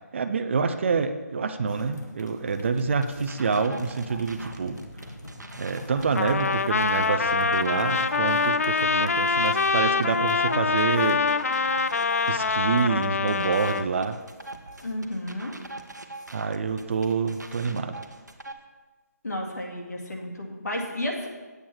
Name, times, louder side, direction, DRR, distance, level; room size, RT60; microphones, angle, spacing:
voice 1, 0.1-4.8 5.6-11.2 12.3-14.2 16.3-18.0, right 5 dB, 45° right, 8 dB, 0.5 m, -27 dB
sound 1, 1.7-18.0, left 1 dB, 90° left, 1.4 m, -46 dB
sound 2, 2.5-18.5, right 2 dB, 85° right, 1.0 m, -43 dB
Trumpet, 6.1-13.9, left 4 dB, 55° left, 0.4 m, -24 dB
voice 2, 14.8-15.5 19.2-21.3, left 1 dB, 70° left, 0 dB, 2.0 m, -32 dB
8.6 x 8.0 x 4.5 m, 1.3 s
figure-of-eight pair, 150°, 9 cm